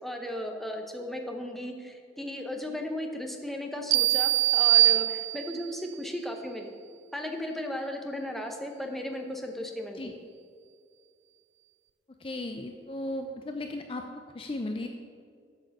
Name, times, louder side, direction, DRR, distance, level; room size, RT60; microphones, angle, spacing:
voice 1, 0.0-6.7 7.1-10.1, left 1 dB, ahead, 3 dB, 0.8 m, -36 dB
sound 1, 3.9-5.7, right 18 dB, 65° right, 0.3 m, -22 dB
voice 2, 12.2-14.9, left 1 dB, 30° left, 5 dB, 0.4 m, -36 dB
8.1 x 7.3 x 6.5 m, 2.2 s
head